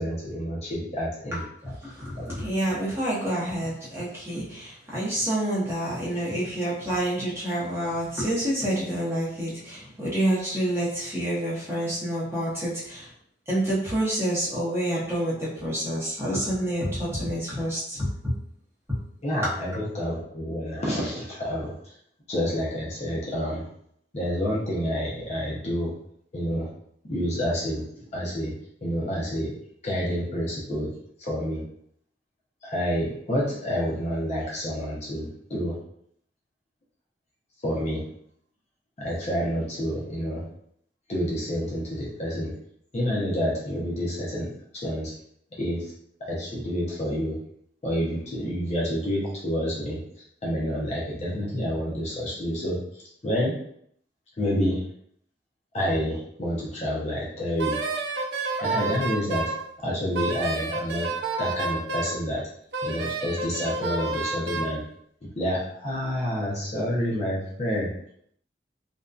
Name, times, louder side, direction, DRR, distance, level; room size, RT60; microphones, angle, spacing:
voice 1, 0.0-1.4 2.2-2.3 2.8-2.9 19.2-21.9 22.3-23.6 24.1-25.9 26.3-26.7 27.1-27.8 28.1-28.5 28.8-29.5 29.8-30.9 31.2-31.6 32.6-35.8 37.6-38.0 39.0-40.4 41.1-42.5 42.9-45.1 45.6-45.9 46.2-47.4 47.8-50.0 50.4-52.8 53.2-53.5 54.4-54.8 55.7-57.8 58.6-59.5 59.8-61.1 61.4-62.4 62.8-64.8 65.4-67.9, equal, 40° left, -5 dB, 0.6 m, -28 dB
voice 2, 1.3-13.1 13.5-18.3 19.4-19.5, right 1 dB, 15° right, -8 dB, 0.8 m, -28 dB
Wind instrument woodwind instrument, 57.6-59.6 60.1-62.2 62.7-64.7, right 3 dB, 70° right, 0.4 m, -29 dB
2.5 x 2.2 x 2.3 m, 0.68 s
head